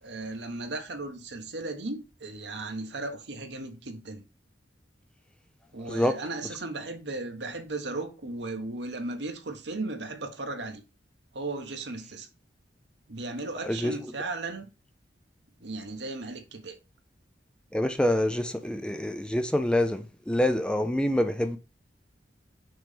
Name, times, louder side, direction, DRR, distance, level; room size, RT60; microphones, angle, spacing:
voice 1, 0.0-4.2 5.7-10.8 11.3-12.3 13.1-14.7 15.6-16.8, right 2 dB, 65° right, 1.3 m, -36 dB
voice 2, 17.7-21.6, left 1 dB, 5° left, 0.5 m, -26 dB
6.1 x 3.2 x 5.1 m
head